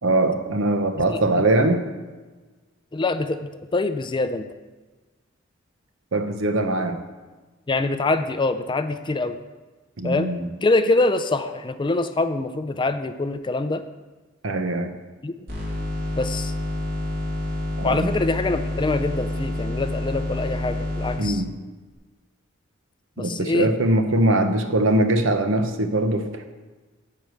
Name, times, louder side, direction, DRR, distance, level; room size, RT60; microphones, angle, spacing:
voice 1, 0.0-1.8 6.1-7.0 10.0-10.5 14.4-14.9 17.8-18.1 21.2-21.5 23.2-26.4, right 2 dB, 70° right, 7 dB, 1.0 m, -22 dB
voice 2, 1.1-1.5 2.9-4.5 7.7-9.4 10.0-10.3 10.6-13.8 15.2-15.3 16.2-16.5 17.8-21.4 23.2-23.7, left 2 dB, 25° left, 10 dB, 0.4 m, -24 dB
sound 1, 15.5-21.2, left 1 dB, 50° right, 2.8 m, -28 dB
10.0 x 4.8 x 7.8 m, 1.3 s
head